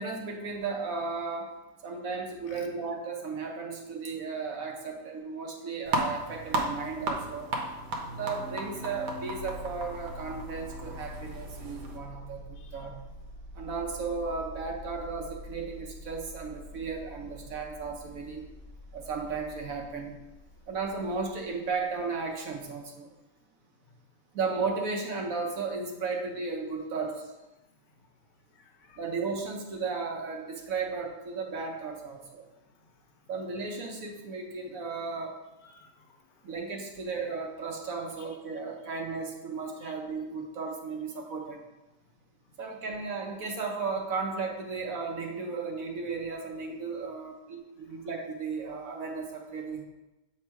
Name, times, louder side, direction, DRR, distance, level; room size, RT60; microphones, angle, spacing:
voice 1, 0.0-1.5 1.8-7.5 8.1-13.0 13.5-18.4 18.9-20.1 20.7-23.1 24.3-27.3 29.0-32.4 33.3-35.3 36.4-41.6 42.6-49.8, right 4 dB, 60° right, 1 dB, 1.1 m, -35 dB
sound 1, 5.9-12.0, right 2 dB, 80° right, 1.5 m, -35 dB
sound 2, 9.3-22.0, left 1 dB, 40° left, 0.9 m, -46 dB
voice 2, 12.6-12.9 23.8-24.0 27.5-28.1 28.5-29.1 32.5-33.3 35.6-36.5 37.0-37.1 38.2-38.4 38.8-39.0 39.8-40.0 42.4-42.5 47.9-48.1, left 5 dB, 85° left, 3 dB, 1.5 m, -59 dB
7.3 x 3.6 x 4.5 m, 1.0 s
omnidirectional pair, 1.8 m